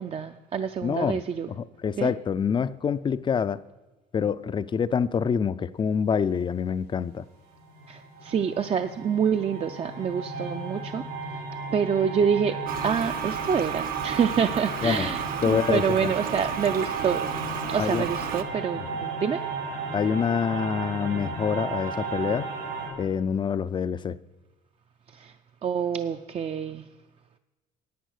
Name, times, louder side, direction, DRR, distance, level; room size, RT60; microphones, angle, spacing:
voice 1, 0.0-1.5 2.0-2.1 7.9-11.0 11.7-12.5 12.8-17.3 17.7-19.4 25.1-25.3 25.6-26.8, right 7 dB, 35° right, 8 dB, 0.4 m, -27 dB
voice 2, 0.8-1.2 1.5-3.6 4.1-7.2 14.8-15.1 15.4-16.1 17.8-18.1 18.8-18.9 19.9-22.5 23.0-24.2, left 6 dB, 30° left, 17 dB, 0.4 m, -26 dB
sound 1, 7.5-22.9, right 3 dB, 90° right, 4.4 m, -35 dB
Toilet flush, 12.7-18.4, right 8 dB, 60° right, 0.9 m, -33 dB
10.5 x 8.7 x 6.5 m, 1.2 s
cardioid pair, 110°, 17 cm